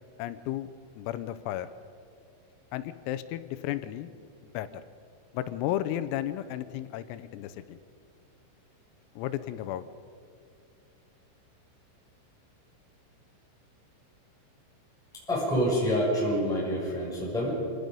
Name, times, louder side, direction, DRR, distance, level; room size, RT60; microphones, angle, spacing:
voice 1, 0.2-0.7 1.0-1.7 2.7-4.1 4.4-4.8 5.3-7.8 9.2-9.9, left 12 dB, 85° left, 13 dB, 3.5 m, -33 dB
voice 2, 15.3-17.5, equal, ahead, -6 dB, 5.8 m, -27 dB
27.0 x 18.0 x 5.3 m, 2.4 s
omnidirectional pair, 6.0 m